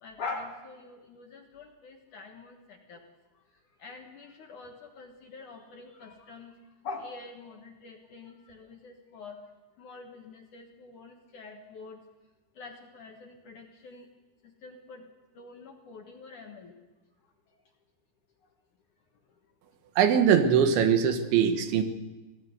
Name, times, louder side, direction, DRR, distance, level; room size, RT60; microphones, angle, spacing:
voice 1, 0.0-3.0 3.8-6.5 6.8-9.4 9.8-12.0 12.6-14.1 14.6-15.1 15.4-16.7, left 3 dB, 60° left, 2 dB, 2.2 m, -44 dB
voice 2, 20.0-21.8, right 7 dB, 75° right, 8 dB, 3.7 m, -22 dB
26.0 x 17.0 x 8.0 m, 1.2 s
omnidirectional pair, 5.4 m